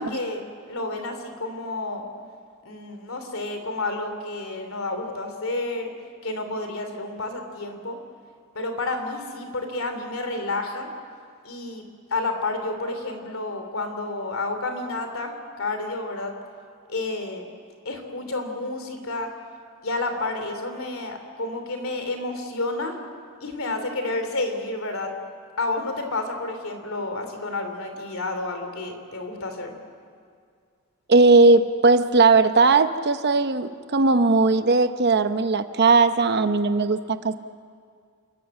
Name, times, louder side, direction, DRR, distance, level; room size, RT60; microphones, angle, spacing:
voice 1, 0.0-2.0 2.6-5.9 6.2-8.0 8.5-10.9 11.4-11.8 12.1-16.3 16.9-17.5 17.8-19.3 19.8-22.9 23.4-25.1 25.6-29.7, left 2 dB, 75° left, 6 dB, 3.1 m, -30 dB
voice 2, 31.1-37.3, right 3 dB, 50° right, 10 dB, 0.8 m, -18 dB
29.0 x 14.0 x 9.0 m, 2.2 s
head